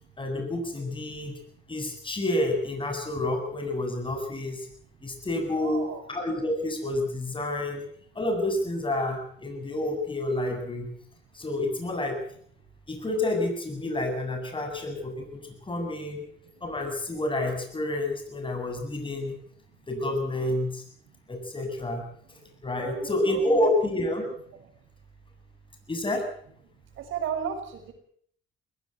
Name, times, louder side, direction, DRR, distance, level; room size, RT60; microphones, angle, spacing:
voice 1, 0.2-1.4 1.7-4.7 5.0-7.9 8.1-10.9 11.3-12.2 12.9-16.2 16.6-19.4 19.9-20.8 21.3-22.0 22.6-24.2 25.9-26.2, left 1 dB, 25° left, 4 dB, 8.0 m, -29 dB
voice 2, 5.6-6.0 9.6-9.7 19.7-19.8 21.0-21.3 22.4-23.7 24.5-24.7 27.0-27.9, right 8 dB, 85° right, 6 dB, 6.1 m, -36 dB
21.0 x 17.5 x 8.3 m, 0.62 s
cardioid pair, 90°, 20 cm